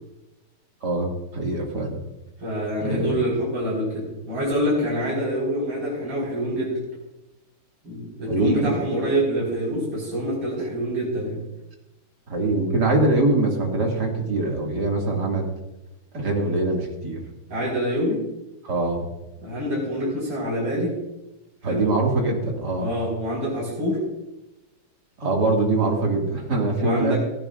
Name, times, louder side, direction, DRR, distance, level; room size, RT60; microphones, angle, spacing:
voice 1, 0.8-2.0 2.8-3.3 8.3-9.0 12.3-15.5 16.1-17.2 18.6-19.1 21.6-22.9 25.2-27.1, right 2 dB, 50° right, 0 dB, 2.7 m, -23 dB
voice 2, 2.4-6.8 7.8-11.4 17.5-18.2 19.4-20.9 21.6-21.9 22.8-24.0 26.8-27.2, equal, 75° right, -7 dB, 5.7 m, -26 dB
19.0 x 15.5 x 2.5 m, 0.99 s
omnidirectional pair, 2.4 m